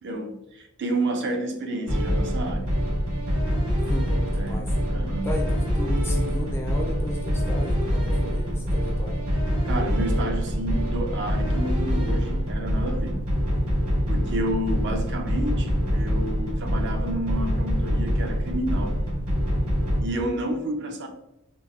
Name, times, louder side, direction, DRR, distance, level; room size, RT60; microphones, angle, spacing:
voice 1, 0.0-2.7 4.3-5.3 9.6-13.2 14.1-18.9 20.0-21.1, right 1 dB, 55° right, 5 dB, 0.5 m, -30 dB
sound 1, 1.9-20.0, equal, 80° right, 1.0 m, -25 dB
voice 2, 3.9-4.7 5.2-9.2, left 1 dB, 10° left, 1 dB, 0.4 m, -35 dB
3.8 x 2.1 x 2.3 m, 0.90 s
head